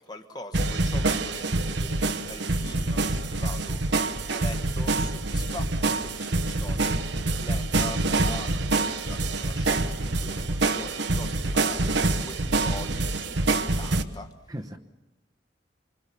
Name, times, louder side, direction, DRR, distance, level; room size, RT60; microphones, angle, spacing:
voice 1, 0.0-3.8 4.3-6.9 7.2-14.3, left 2 dB, 20° left, 6 dB, 1.3 m, -43 dB
sound 1, 0.5-14.0, right 2 dB, 70° right, 1.2 m, -26 dB
voice 2, 10.4-10.9 14.5-14.8, equal, 20° right, 4 dB, 1.1 m, -40 dB
26.5 x 25.0 x 7.1 m, 0.97 s
head